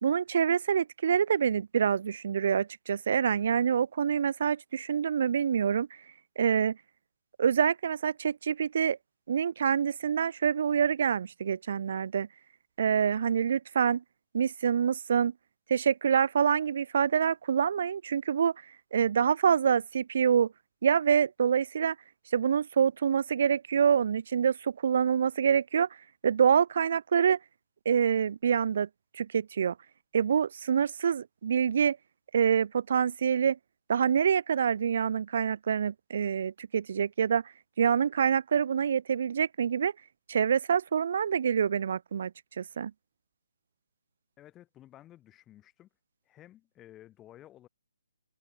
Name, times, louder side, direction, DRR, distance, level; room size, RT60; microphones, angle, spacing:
voice 1, 0.0-5.9 6.4-6.8 7.4-9.0 9.3-12.3 12.8-14.0 14.3-15.3 15.7-18.5 18.9-20.5 20.8-22.0 22.3-25.9 26.2-27.4 27.9-28.9 29.2-29.7 30.1-32.0 32.3-33.6 33.9-37.4 37.8-39.9 40.3-42.3 42.6-42.9, right 7 dB, 45° right, 0.4 m, -26 dB
voice 2, 44.4-45.9 46.2-47.7, left 13 dB, 10° left, 1.6 m, -54 dB
hypercardioid pair, 170°, 0 cm